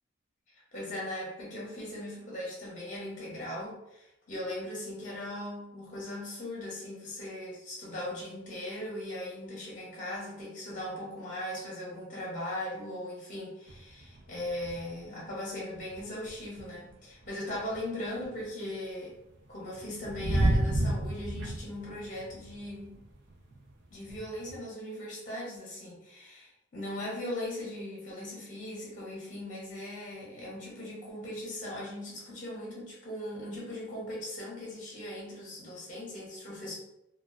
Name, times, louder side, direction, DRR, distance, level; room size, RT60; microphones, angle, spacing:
voice 1, 0.7-19.1 19.5-23.0 23.9-36.7, left 1 dB, 35° left, -4 dB, 0.6 m, -39 dB
sound 1, 13.7-15.0 15.3-15.4 15.7-18.5 19.1-24.6, right 1 dB, 55° right, 0.4 m, -33 dB
2.4 x 2.2 x 2.4 m, 0.85 s
head